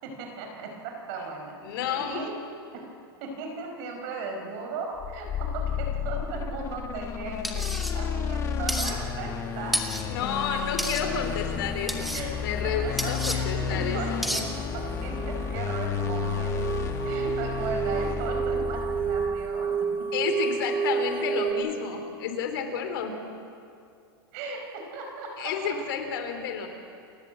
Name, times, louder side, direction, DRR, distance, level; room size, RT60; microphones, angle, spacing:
voice 1, 0.0-2.4 2.7-2.9 3.2-9.8 12.1-12.3 12.6-16.8 17.0-20.1 24.3-25.8, right 4 dB, 45° right, 3 dB, 5.3 m, -37 dB
voice 2, 1.6-2.2 10.0-12.1 12.4-14.2 20.1-23.2 25.4-26.7, left 6 dB, 65° left, 6 dB, 3.3 m, -31 dB
sound 1, 5.0-19.6, left 6 dB, 25° left, 1.4 m, -32 dB
Metal Scraping Metal, 7.4-7.9 8.7-8.9 9.7-10.0 10.8-11.0 11.9-12.2 13.0-13.4 14.2-14.4, equal, ahead, 1.4 m, -30 dB
sound 2, 13.2-21.5, right 6 dB, 20° right, 1.6 m, -31 dB
29.0 x 13.0 x 8.2 m, 2.5 s
supercardioid pair, 160°, 13 cm